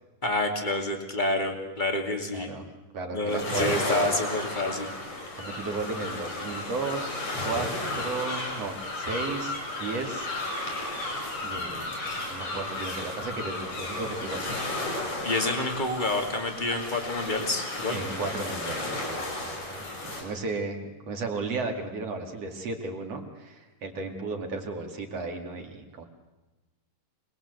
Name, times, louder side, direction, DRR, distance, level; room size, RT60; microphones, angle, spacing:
voice 1, 0.2-2.5 3.1-4.9 15.2-18.0, left 2 dB, 15° left, 4 dB, 2.4 m, -28 dB
voice 2, 2.3-2.6 2.9-4.1 5.3-7.7 7.9-10.3 11.4-12.0 12.3-14.5 17.9-19.9 20.2-26.0, right 3 dB, 50° right, 3 dB, 3.3 m, -34 dB
sound 1, 3.3-20.2, left 2 dB, 60° left, 7.0 m, -33 dB
26.0 x 20.5 x 8.1 m, 1.1 s
omnidirectional pair, 3.8 m